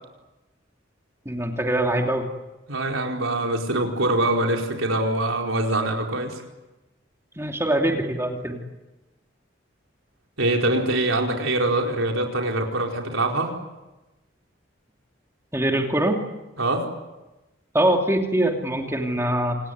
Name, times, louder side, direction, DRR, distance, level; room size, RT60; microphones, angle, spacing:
voice 1, 1.2-2.3 7.4-8.6 15.5-16.2 17.7-19.6, right 1 dB, 15° right, 2 dB, 2.7 m, -23 dB
voice 2, 2.7-6.4 10.4-13.6 16.6-16.9, right 2 dB, 90° right, 2 dB, 4.6 m, -24 dB
27.5 x 19.5 x 9.5 m, 1.0 s
head